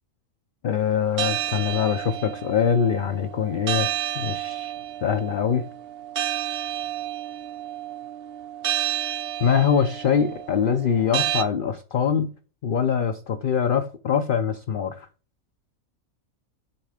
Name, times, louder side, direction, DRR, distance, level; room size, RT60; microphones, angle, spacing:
voice 1, 0.6-3.9 4.2-4.7 5.0-5.7 9.4-12.3 12.6-15.1, left 7 dB, 60° left, 0.5 m, -23 dB
sound 1, 1.2-11.4, right 11 dB, 50° right, 0.8 m, -30 dB
7.1 x 3.3 x 4.8 m
omnidirectional pair, 1.5 m